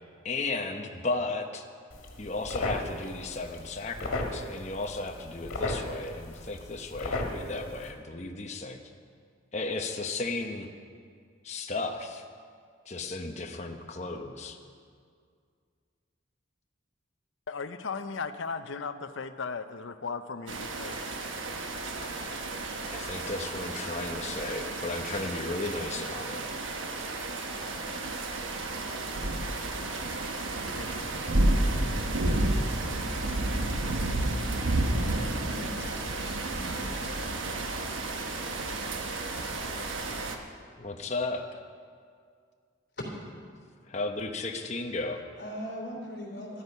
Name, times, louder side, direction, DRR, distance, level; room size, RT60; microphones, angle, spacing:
voice 1, 0.2-1.6 2.2-8.8 9.5-10.7 11.4-12.2 12.9-14.6 22.0-22.5 22.9-26.4 38.1-38.6 39.0-40.1 40.8-41.5 43.9-45.2, left 3 dB, 35° left, 4 dB, 0.9 m, -35 dB
sound 1, 1.9-7.9, left 2 dB, 85° left, 1.9 m, -36 dB
voice 2, 17.5-21.0 30.7-31.1, left 5 dB, 70° left, 11 dB, 0.6 m, -36 dB
sound 2, 20.5-40.4, right 2 dB, 75° right, 1.1 m, -31 dB
voice 3, 35.5-36.4 36.9-37.2 45.4-46.6, equal, 50° left, -2 dB, 3.5 m, -40 dB
12.5 x 12.5 x 5.5 m, 2.1 s
head